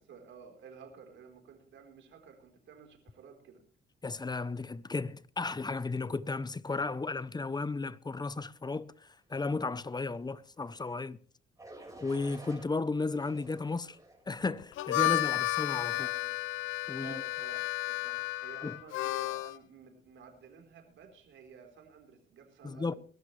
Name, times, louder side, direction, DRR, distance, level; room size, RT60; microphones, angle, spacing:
voice 1, 0.0-3.6 15.9-16.4 16.9-23.0, right 6 dB, 70° right, 4.2 m, -53 dB
voice 2, 4.0-11.2 12.0-14.0 14.3-16.1 16.9-17.2 18.6-18.8 22.6-22.9, left 3 dB, 20° left, 0.8 m, -34 dB
sound 1, 10.7-11.0 11.6-12.7 13.2-14.2 14.8-15.2, right 2 dB, 15° right, 5.1 m, -52 dB
Harmonica, 14.6-19.6, left 17 dB, 90° left, 0.6 m, -32 dB
21.5 x 13.0 x 3.3 m
cardioid pair, 90°, 20 cm